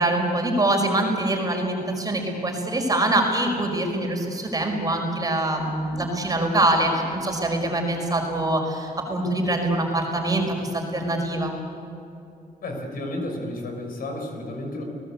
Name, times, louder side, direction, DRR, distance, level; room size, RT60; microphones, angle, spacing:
voice 1, 0.0-11.5, right 1 dB, 25° right, 2 dB, 5.1 m, -24 dB
voice 2, 12.6-14.8, left 1 dB, 65° left, 3 dB, 6.1 m, -32 dB
29.5 x 19.0 x 8.5 m, 2.8 s
cardioid pair, 125°, 16 cm